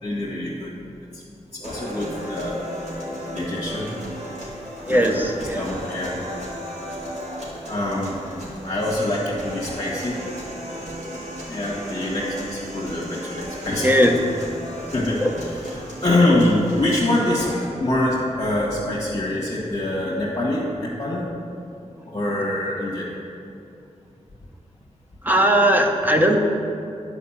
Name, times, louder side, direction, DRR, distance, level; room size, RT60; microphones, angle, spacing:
voice 1, 0.0-0.7 1.5-2.6 3.3-3.9 4.9-5.2 5.6-6.2 7.7-8.2 8.6-10.2 11.5-14.1 14.9-21.3 22.1-23.1, left 1 dB, 30° left, -6 dB, 1.8 m, -24 dB
sound 1, 1.6-17.6, equal, 65° right, 2.6 m, -35 dB
voice 2, 4.9-5.6 13.8-14.1 15.2-15.3 25.2-26.4, equal, 15° right, 2 dB, 0.9 m, -18 dB
11.0 x 4.9 x 7.3 m, 2.6 s
wide cardioid pair, 135°, 13 cm